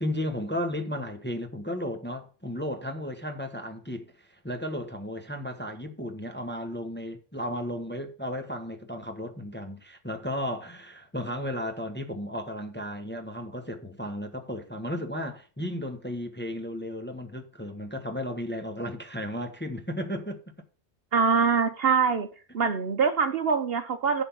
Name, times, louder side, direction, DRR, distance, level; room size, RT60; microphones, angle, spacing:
voice 1, 0.0-20.4, equal, 10° left, 1.0 m, -34 dB
voice 2, 21.1-22.3 22.5-24.2, right 5 dB, 55° right, 1.0 m, -24 dB
11.0 x 4.1 x 7.0 m
omnidirectional pair, 1.3 m